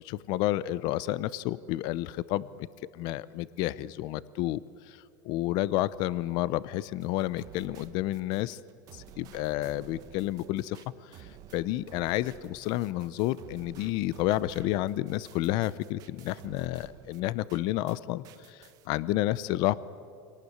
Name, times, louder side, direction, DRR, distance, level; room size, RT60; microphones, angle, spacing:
voice 1, 0.0-2.7 2.9-4.6 4.9-8.6 8.9-19.7, left 15 dB, 50° left, 19 dB, 0.6 m, -30 dB
sound 1, 7.0-18.0 18.2-18.9, right 10 dB, 45° right, 1.3 m, -52 dB
24.5 x 18.5 x 9.5 m, 2.5 s
supercardioid pair, 145°, 9 cm